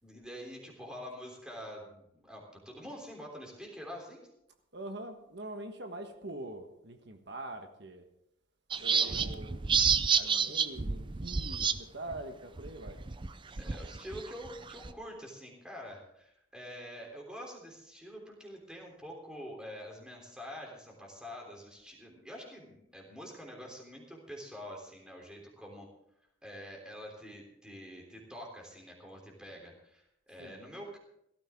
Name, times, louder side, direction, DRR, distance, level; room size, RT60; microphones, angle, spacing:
voice 1, 0.0-4.3 8.7-9.3 13.5-25.9 26.4-31.0, equal, 5° right, -1 dB, 3.4 m, -46 dB
voice 2, 4.7-8.0 8.8-9.6 10.1-13.0 30.4-30.6, right 1 dB, 55° right, 5 dB, 1.4 m, -44 dB
sound 1, 8.7-11.8 12.1-12.2 12.6-14.9, right 6 dB, 25° right, 0.5 m, -29 dB
17.0 x 13.5 x 3.7 m, 0.77 s
head